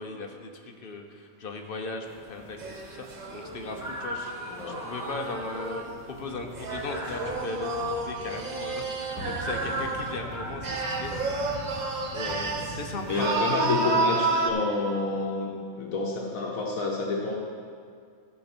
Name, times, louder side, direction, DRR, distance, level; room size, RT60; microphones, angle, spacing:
voice 1, 0.0-11.1 12.1-13.4, left 3 dB, 45° left, 3 dB, 1.0 m, -38 dB
sound 1, 2.0-13.2, equal, ahead, 2.2 m, -40 dB
sound 2, 2.6-6.0 6.6-10.2 10.6-12.8 13.1-14.5, right 3 dB, 35° right, 0.8 m, -30 dB
voice 2, 4.4-4.8 13.1-17.4, left 3 dB, 75° left, -1 dB, 1.4 m, -29 dB
13.5 x 5.3 x 6.1 m, 2.2 s
omnidirectional pair, 1.5 m